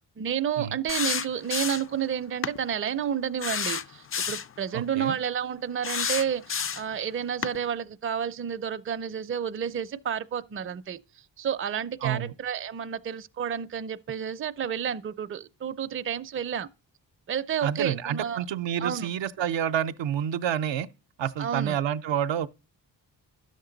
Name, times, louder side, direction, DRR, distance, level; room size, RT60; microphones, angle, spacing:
voice 1, 0.2-16.7 17.3-18.4 18.8-19.1 21.4-21.8, right 8 dB, 30° right, 0.5 m, -30 dB
sound 1, 0.9-2.0 2.4-2.6 3.4-4.5 5.8-6.9 7.4-7.6, left 7 dB, 35° left, 0.4 m, -30 dB
voice 2, 4.7-5.2 12.0-12.3 17.6-20.9 21.2-22.5, right 9 dB, 85° right, 0.6 m, -28 dB
10.0 x 6.7 x 3.8 m
cardioid pair, 70°, 43 cm